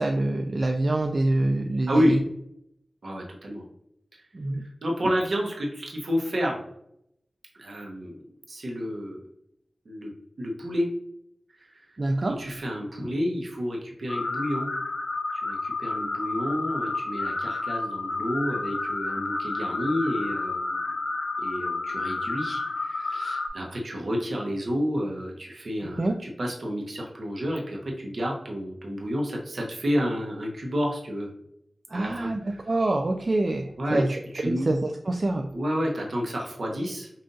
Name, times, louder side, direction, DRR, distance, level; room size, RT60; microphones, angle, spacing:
voice 1, 0.0-2.2 4.3-4.7 12.0-12.4 26.0-26.1 31.9-34.1 34.4-35.5, right 2 dB, 45° right, 3 dB, 0.3 m, -26 dB
voice 2, 1.9-2.2 3.0-3.6 4.1-4.3 4.6-6.6 7.5-9.2 9.8-10.1 10.4-10.9 11.6-11.9 12.3-14.7 15.3-20.8 21.4-31.3 31.9-32.6 33.8-34.7 35.5-37.1, equal, 70° right, -1 dB, 0.9 m, -30 dB
sound 1, 14.1-23.5, left 3 dB, 80° left, 0.6 m, -30 dB
5.5 x 2.5 x 2.6 m, 0.76 s
wide cardioid pair, 70°, 0 cm